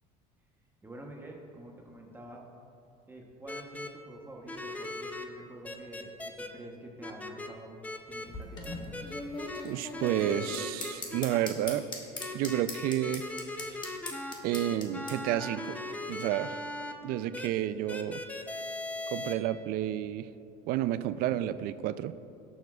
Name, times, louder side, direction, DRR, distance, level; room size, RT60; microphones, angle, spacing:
voice 1, 0.8-2.4 3.1-7.8 8.1-9.0, right 1 dB, 15° right, 0 dB, 0.9 m, -48 dB
sound 1, 3.5-3.9 4.5-5.2 5.6-6.5 7.0-7.5 7.8-8.2 8.6-9.6 9.9-11.4 12.2-16.9 17.3-17.5 17.9-19.3, left 2 dB, 10° left, 0.5 m, -39 dB
sound 2, 8.1-15.2, left 3 dB, 25° left, 1.2 m, -40 dB
voice 2, 9.6-11.9 12.3-13.3 13.8-13.9 14.4-15.8 16.1-16.6 17.0-18.2 19.1-20.3 20.7-22.1, right 12 dB, 60° right, 13 dB, 0.4 m, -30 dB
17.5 x 7.1 x 2.4 m, 2.6 s
cardioid pair, 140°, 17 cm